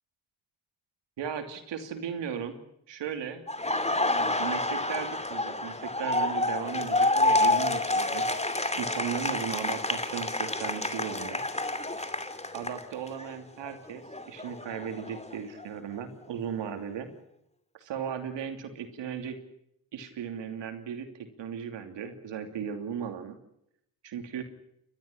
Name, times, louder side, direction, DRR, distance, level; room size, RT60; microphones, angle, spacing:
voice 1, 1.2-2.6 2.9-3.4 4.0-8.2 8.7-11.4 12.5-17.1 17.7-19.4 19.9-23.4 24.0-24.4, right 7 dB, 90° right, 7 dB, 3.0 m, -36 dB
Laughter, 3.5-13.3 13.6-15.7, left 2 dB, 15° left, 2.6 m, -29 dB
30.0 x 13.5 x 9.9 m, 0.78 s
supercardioid pair, 50°, 42 cm